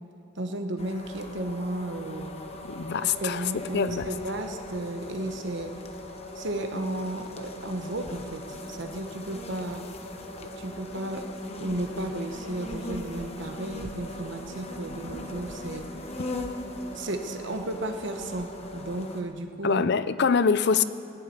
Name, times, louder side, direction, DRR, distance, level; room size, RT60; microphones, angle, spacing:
voice 1, 0.3-2.3 3.0-5.7 6.3-9.9 10.4-11.2 11.6-15.9 16.9-19.8, right 1 dB, 60° right, 6 dB, 1.1 m, -34 dB
sound 1, 0.8-19.2, left 1 dB, 30° left, 1.0 m, -39 dB
voice 2, 2.7-4.1 19.6-20.8, left 6 dB, 55° left, 14 dB, 0.5 m, -24 dB
17.5 x 7.4 x 9.6 m, 2.5 s
head